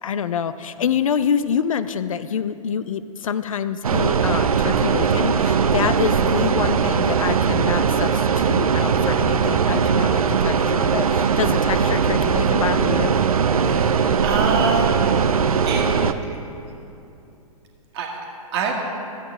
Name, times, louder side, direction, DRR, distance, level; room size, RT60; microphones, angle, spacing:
voice 1, 0.0-13.1, left 8 dB, 65° left, 13 dB, 0.4 m, -26 dB
sound 1, 3.8-16.1, right 6 dB, 75° right, 0.5 m, -20 dB
voice 2, 13.6-15.1 15.7-15.8 16.2-16.5 17.9-18.7, right 4 dB, 45° right, 1 dB, 1.6 m, -26 dB
13.0 x 8.2 x 3.6 m, 2.7 s
figure-of-eight pair, 110°, 19 cm